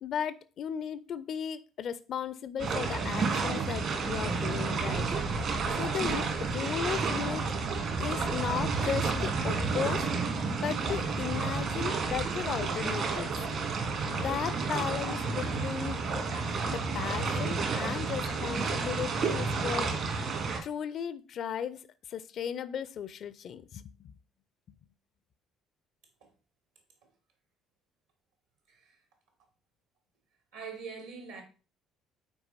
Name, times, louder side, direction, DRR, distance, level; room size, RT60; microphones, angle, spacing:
voice 1, 0.0-5.5 5.8-7.5 8.0-10.0 10.5-13.3 14.1-16.0 16.7-20.3 20.6-21.8 22.1-24.1, left 8 dB, 50° left, 0.5 m, -36 dB
sound 1, 2.6-20.6, right 4 dB, 50° right, 1.8 m, -31 dB
voice 2, 28.7-29.0 30.5-31.4, right 5 dB, 70° right, 2.5 m, -43 dB
8.0 x 4.8 x 4.2 m
figure-of-eight pair, 50°, 0 cm